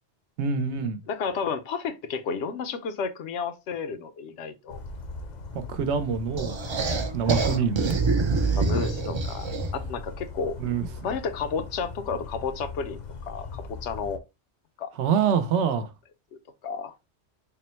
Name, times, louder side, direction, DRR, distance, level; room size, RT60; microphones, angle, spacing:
voice 1, 0.4-1.0 5.7-6.6 7.1-8.0 10.6-10.9 15.0-15.9, right 6 dB, 80° right, 0.9 m, -25 dB
voice 2, 1.1-4.8 8.5-10.6 11.0-13.0 13.3-14.2 14.8-14.9 16.6-16.9, left 5 dB, 85° left, 0.9 m, -32 dB
Bird vocalization bird call bird song, 4.7-14.2, left 4 dB, 50° left, 0.6 m, -39 dB
sound 1, 6.4-9.9, right 3 dB, 45° right, 0.3 m, -26 dB
3.7 x 2.1 x 4.2 m
omnidirectional pair, 1.2 m